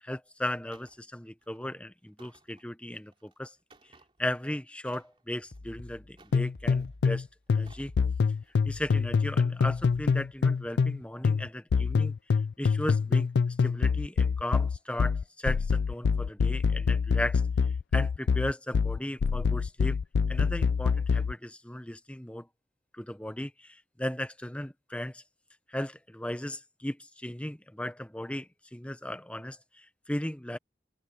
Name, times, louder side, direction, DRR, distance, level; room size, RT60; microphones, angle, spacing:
voice 1, 0.0-3.5 4.2-7.3 7.5-7.9 8.6-12.1 12.6-17.4 17.9-20.0 20.3-22.5 22.9-25.2 25.7-30.6, left 1 dB, 5° left, 0.8 m, -36 dB
sound 1, 0.7-1.0 1.4-1.6 2.0-4.5 4.8-5.6 6.1-7.0 7.5-7.9 8.4-8.6, right 3 dB, 30° right, 2.7 m, -61 dB
sound 2, 5.5-10.5, left 2 dB, 55° left, 0.9 m, -49 dB
sound 3, 6.3-7.2 7.5-11.0 11.2-21.3, left 5 dB, 75° left, 0.4 m, -25 dB
head